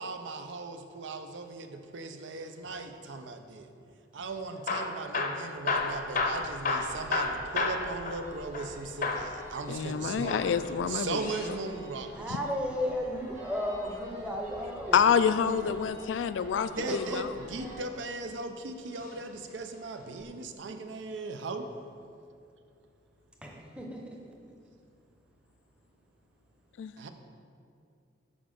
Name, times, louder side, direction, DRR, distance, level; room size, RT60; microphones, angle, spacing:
voice 1, 0.0-3.7 4.1-10.4 10.9-12.4 16.7-21.7 27.0-27.1, right 3 dB, 80° right, 7 dB, 0.5 m, -38 dB
Hammer / Drill, 4.5-8.7 9.0-9.3 10.1-11.6 13.3-14.6 16.3-16.7 17.4-18.3 19.0-19.2 19.5-19.6 20.2-20.3, left 3 dB, 45° left, 0.6 m, -33 dB
sound 1, 5.7-17.8, equal, 40° right, 1.4 m, -49 dB
voice 2, 9.7-11.3 12.3-12.4 14.9-17.3 26.8-27.1, left 7 dB, 85° left, 13 dB, 0.3 m, -27 dB
voice 3, 12.1-15.0 16.9-17.0 23.4-24.2, left 1 dB, 5° right, 0 dB, 0.7 m, -34 dB
6.9 x 5.0 x 5.1 m, 2.5 s
head